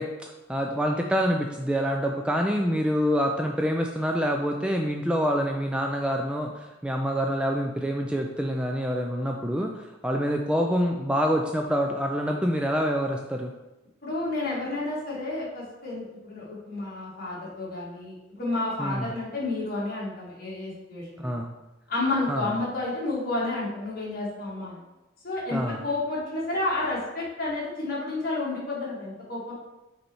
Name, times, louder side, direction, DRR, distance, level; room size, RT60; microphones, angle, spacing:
voice 1, 0.0-13.5 18.8-19.1 21.2-21.5 22.3-22.5 25.5-25.8, equal, 5° right, 2 dB, 0.3 m, -26 dB
voice 2, 14.0-21.4 21.9-24.8 25.2-29.5, left 2 dB, 50° left, -5 dB, 2.1 m, -31 dB
5.4 x 4.2 x 4.5 m, 1.0 s
head